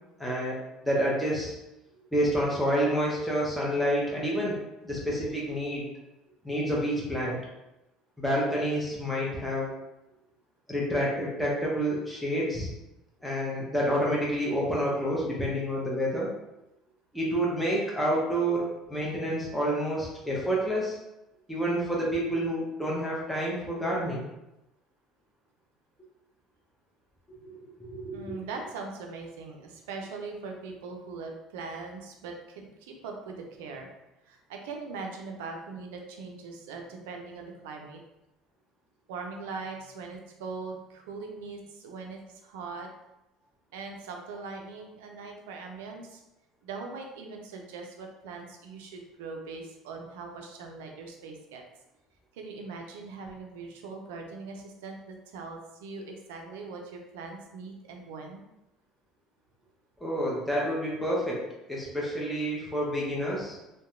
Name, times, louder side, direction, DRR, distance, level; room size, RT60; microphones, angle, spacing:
voice 1, 0.2-0.6 0.8-1.5 2.1-4.6 4.8-5.8 6.4-7.4 8.2-9.7 10.7-12.7 13.2-16.3 17.1-21.0 21.5-24.2 27.4-27.5 27.9-28.2 60.0-61.4 61.7-63.6, equal, 5° left, -5 dB, 0.8 m, -28 dB
voice 2, 28.1-33.9 34.3-38.0 39.1-42.9 43.7-46.2 46.6-51.6 52.3-58.4, right 4 dB, 80° right, 2 dB, 0.4 m, -41 dB
2.7 x 2.2 x 2.5 m, 0.94 s
hypercardioid pair, 75°, 0 cm